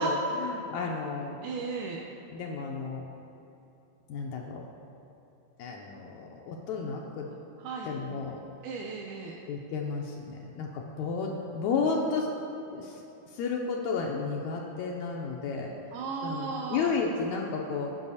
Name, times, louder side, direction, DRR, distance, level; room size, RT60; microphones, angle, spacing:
voice 1, 0.0-1.4 2.3-3.0 4.1-4.6 5.6-7.3 7.8-8.4 9.5-12.3 12.7-13.0 13.3-15.7 16.2-17.9, left 4 dB, 80° left, 0 dB, 1.9 m, -32 dB
voice 2, 1.4-2.0 7.6-7.9 8.6-9.3 15.9-16.9, right 4 dB, 90° right, -1 dB, 2.1 m, -34 dB
16.0 x 5.4 x 2.8 m, 2.8 s
omnidirectional pair, 3.5 m